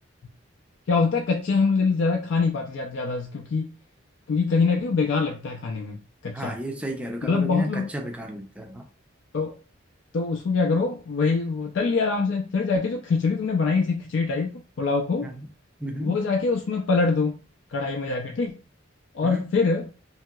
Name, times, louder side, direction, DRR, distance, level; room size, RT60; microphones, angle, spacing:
voice 1, 0.9-3.8 4.3-6.0 6.2-6.6 7.2-7.9 9.3-9.5 10.1-15.3 16.0-17.4 17.7-18.6 19.1-19.9, left 4 dB, 65° left, 0.4 m, -24 dB
voice 2, 6.3-8.9 15.2-15.5 15.8-16.1 19.2-19.5, right 1 dB, 5° right, 0.4 m, -33 dB
2.8 x 2.7 x 2.3 m
head